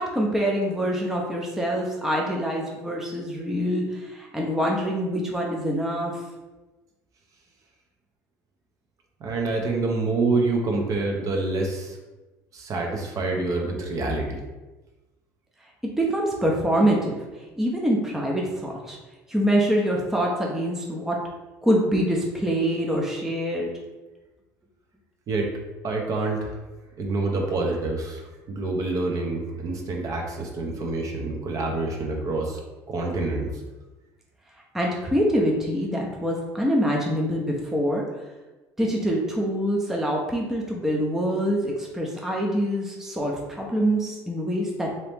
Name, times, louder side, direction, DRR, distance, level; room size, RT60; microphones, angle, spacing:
voice 1, 0.0-6.2 16.0-17.2 17.6-19.0 19.3-21.2 21.6-23.7 34.7-38.0 38.8-44.9, equal, 5° right, -1 dB, 0.5 m, -25 dB
voice 2, 9.2-12.0 12.5-14.4 25.3-25.5 25.8-26.6 27.0-32.6 32.9-33.5, right 3 dB, 45° right, 1 dB, 0.7 m, -27 dB
3.0 x 2.8 x 3.4 m, 1.1 s
supercardioid pair, 100°, 8 cm